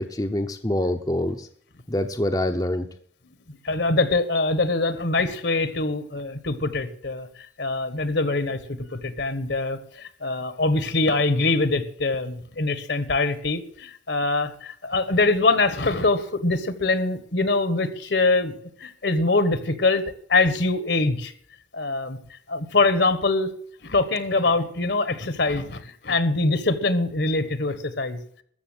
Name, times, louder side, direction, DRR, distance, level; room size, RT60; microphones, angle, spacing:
voice 1, 0.0-1.5 1.9-2.9, left 1 dB, 20° left, 5 dB, 0.8 m, -25 dB
voice 2, 3.5-7.3 7.6-20.0 20.3-21.3 21.7-22.2 22.5-23.5 23.8-28.2, left 3 dB, 65° left, 12 dB, 1.4 m, -23 dB
14.0 x 7.1 x 9.0 m, 0.62 s
head